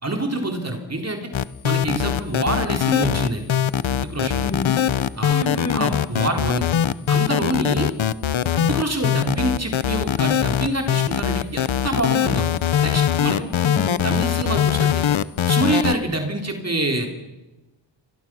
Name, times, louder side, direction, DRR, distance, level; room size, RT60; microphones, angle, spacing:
voice 1, 0.0-1.3 1.6-3.5 4.0-4.4 5.2-5.4 5.7-6.7 7.1-7.9 8.5-12.5 12.8-13.4 14.0-15.0 15.5-17.1, right 2 dB, 35° right, 3 dB, 3.8 m, -26 dB
sound 1, 1.3-16.0, left 9 dB, 90° left, 0.9 m, -21 dB
voice 2, 4.4-4.9 5.3-6.0 13.4-14.0, left 2 dB, 35° left, 3 dB, 7.4 m, -29 dB
29.0 x 25.5 x 6.2 m, 1.1 s
wide cardioid pair, 105°, 45 cm